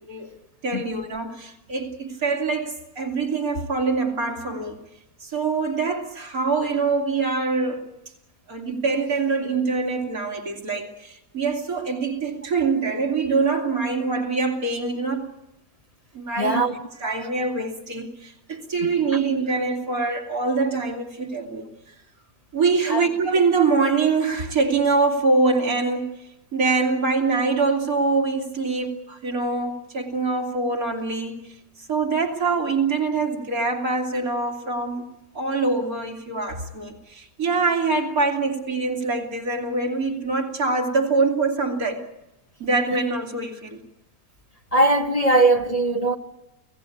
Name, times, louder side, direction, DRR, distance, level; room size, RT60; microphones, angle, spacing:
voice 1, 0.6-4.8 5.2-7.9 8.5-15.3 16.1-16.7 17.0-21.7 22.5-26.1 26.5-31.4 31.9-35.0 35.3-42.0 42.6-43.8, right 4 dB, 70° right, 3.0 m, -24 dB
voice 2, 16.4-16.7 22.9-23.0 44.7-46.2, right 2 dB, 25° left, 1.1 m, -19 dB
29.5 x 17.0 x 8.5 m
omnidirectional pair, 1.6 m